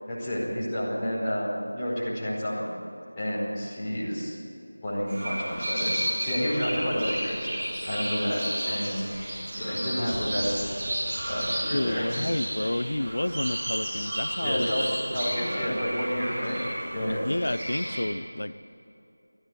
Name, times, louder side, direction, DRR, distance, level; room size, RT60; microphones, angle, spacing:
voice 1, 0.1-2.7 3.2-4.3 4.8-7.5 7.9-10.6 11.3-12.2 14.4-16.6 16.9-17.2, equal, 10° left, -11 dB, 5.0 m, -30 dB
sound 1, 5.1-18.0, equal, 25° right, 6.6 m, -32 dB
sound 2, 9.3-11.9, equal, 45° right, 5.0 m, -46 dB
voice 2, 11.7-14.7 17.1-18.6, left 1 dB, 70° left, 13 dB, 0.9 m, -30 dB
17.0 x 16.5 x 9.6 m, 2.7 s
figure-of-eight pair, 175°, 0 cm